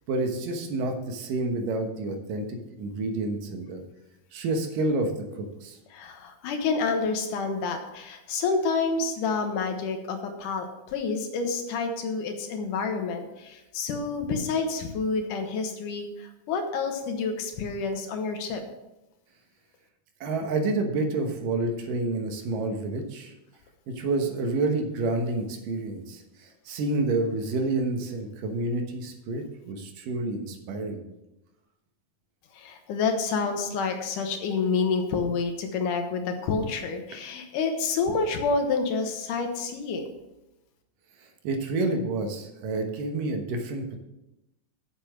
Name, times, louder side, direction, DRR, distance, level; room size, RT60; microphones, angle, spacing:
voice 1, 0.1-3.8 4.3-5.8 20.2-23.3 23.9-31.0 41.4-44.0, right 2 dB, 85° right, 4 dB, 2.9 m, -29 dB
voice 2, 5.9-18.6 32.5-40.1, left 4 dB, 75° left, 5 dB, 2.5 m, -28 dB
7.6 x 6.9 x 6.2 m, 0.94 s
omnidirectional pair, 3.7 m